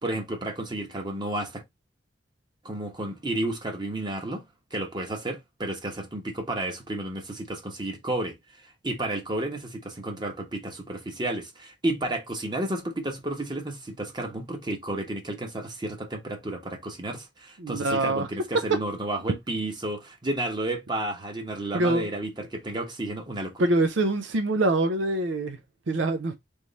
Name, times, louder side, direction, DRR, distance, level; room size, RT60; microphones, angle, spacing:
voice 1, 0.0-1.6 2.6-4.4 4.7-8.3 8.8-23.6, right 1 dB, 25° right, 1.0 m, -32 dB
voice 2, 17.6-18.3 21.7-22.1 23.6-25.6 25.9-26.3, right 2 dB, 80° right, 0.6 m, -24 dB
3.5 x 3.1 x 4.0 m
head